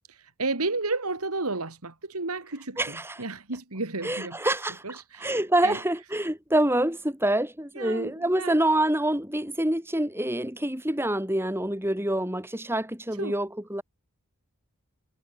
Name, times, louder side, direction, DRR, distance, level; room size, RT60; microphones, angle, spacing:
voice 1, 0.1-4.4 4.8-5.3 5.6-5.8 7.8-8.6 13.2-13.4, right 3 dB, 85° right, 2.7 m, -32 dB
voice 2, 2.8-3.2 4.0-13.8, right 1 dB, 10° right, 3.7 m, -26 dB
head